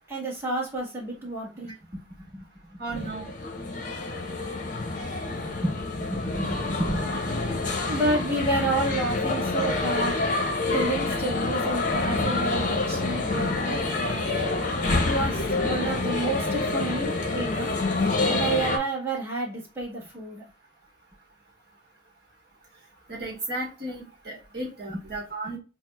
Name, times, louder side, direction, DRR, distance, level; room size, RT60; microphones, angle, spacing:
voice 1, 0.1-3.1 5.6-7.4 7.9-14.4 15.0-20.5 24.9-25.0, right 2 dB, 15° right, -5 dB, 1.4 m, -30 dB
voice 2, 2.8-3.3 23.1-25.6, right 2 dB, 50° right, -2 dB, 1.1 m, -34 dB
sound 1, 2.9-18.8, left 3 dB, 40° left, 0.7 m, -27 dB
6.1 x 2.1 x 2.2 m, 0.31 s
head